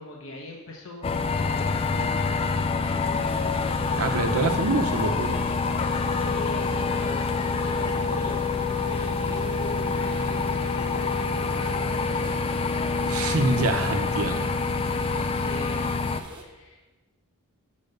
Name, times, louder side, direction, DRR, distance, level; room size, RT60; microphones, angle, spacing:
voice 1, 0.0-4.2 6.2-7.3 7.6-8.4 8.9-12.4 14.9-16.1 16.4-17.0, left 1 dB, 60° left, -1 dB, 0.9 m, -41 dB
sound 1, 1.0-16.2, left 4 dB, 25° left, 0.3 m, -26 dB
sound 2, 3.1-16.4, right 1 dB, 20° right, 1.0 m, -46 dB
voice 2, 4.0-5.4 13.1-14.5, right 2 dB, 75° right, 7 dB, 0.8 m, -26 dB
6.7 x 5.3 x 6.6 m, 1.2 s
head